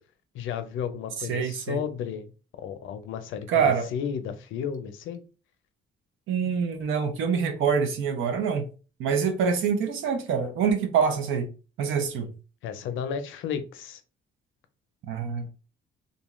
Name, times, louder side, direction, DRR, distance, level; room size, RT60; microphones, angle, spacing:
voice 1, 0.3-2.3 2.6-5.2 12.6-14.0, left 7 dB, 80° left, 0.5 m, -33 dB
voice 2, 1.3-1.8 3.5-3.9 6.3-8.6 9.0-11.5 11.8-12.3 15.1-15.5, right 6 dB, 80° right, 0.6 m, -25 dB
2.6 x 2.3 x 3.0 m
cardioid pair, 90°, 20 cm